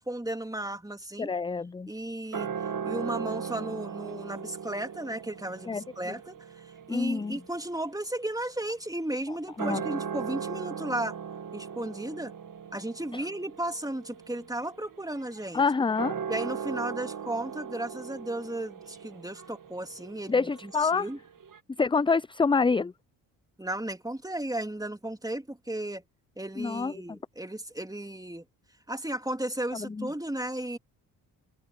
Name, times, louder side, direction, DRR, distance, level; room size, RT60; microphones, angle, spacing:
voice 1, 0.0-1.3 1.9-2.5 2.8-11.2 11.5-12.3 12.7-15.6 16.3-21.2 23.6-26.0 26.4-28.4 28.9-30.8, right 1 dB, 10° right, 3.5 m, -35 dB
voice 2, 1.2-1.9 5.7-5.8 6.9-7.4 9.6-9.8 15.5-16.2 20.3-21.0 21.8-22.9 26.6-27.2 29.7-30.1, left 4 dB, 10° left, 0.5 m, -27 dB
sound 1, 2.3-9.0 9.4-21.6, right 7 dB, 40° right, 2.2 m, -39 dB
hypercardioid pair, 45°, 46 cm